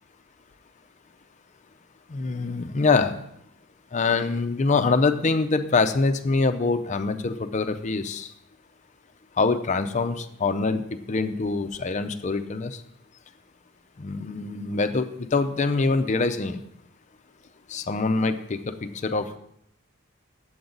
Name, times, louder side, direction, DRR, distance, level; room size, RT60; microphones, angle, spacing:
voice 1, 2.1-3.2 3.9-8.3 9.4-12.8 14.0-15.1 15.3-16.6 17.7-19.4, left 3 dB, 35° left, 9 dB, 0.5 m, -24 dB
9.2 x 7.8 x 3.9 m, 0.73 s
head